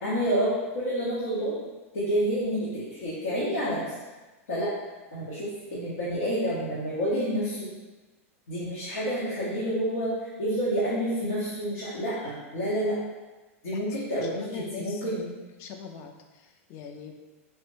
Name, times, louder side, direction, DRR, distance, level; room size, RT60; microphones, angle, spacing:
voice 1, 0.0-1.5 1.9-3.9 4.5-4.7 5.1-7.7 8.5-13.0 13.6-15.3, equal, 90° left, -9 dB, 1.0 m, -29 dB
voice 2, 14.1-15.0 15.6-17.1, left 6 dB, 35° left, 4 dB, 0.3 m, -41 dB
3.4 x 2.1 x 3.0 m, 1.2 s
supercardioid pair, 150°, 8 cm